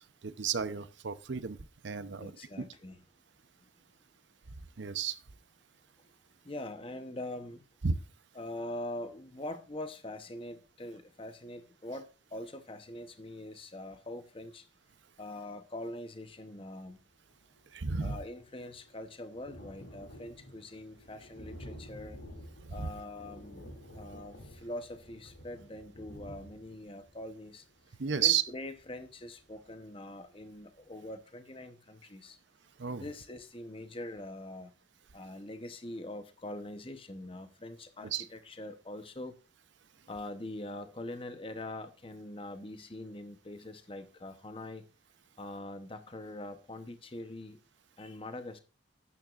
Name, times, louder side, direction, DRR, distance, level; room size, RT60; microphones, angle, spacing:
voice 1, 0.2-1.6 1.8-2.3 2.6-2.7 4.8-5.2 7.8-7.9 17.7-18.2 22.7-22.9 28.0-28.4 32.8-33.1 38.0-38.3, right 7 dB, 70° right, 0.7 m, -32 dB
voice 2, 2.2-3.0 6.4-7.6 8.3-14.7 15.2-17.0 18.0-22.2 22.7-23.6 23.9-27.6 28.1-32.4 33.0-34.7 35.1-39.4 40.1-44.8 45.4-47.6 48.0-48.6, left 1 dB, 30° left, 0.8 m, -43 dB
Thunder, 17.0-17.1 17.3-29.9 30.4-30.5 30.8-30.9, equal, 80° left, 2.7 m, -51 dB
12.5 x 9.2 x 2.4 m
head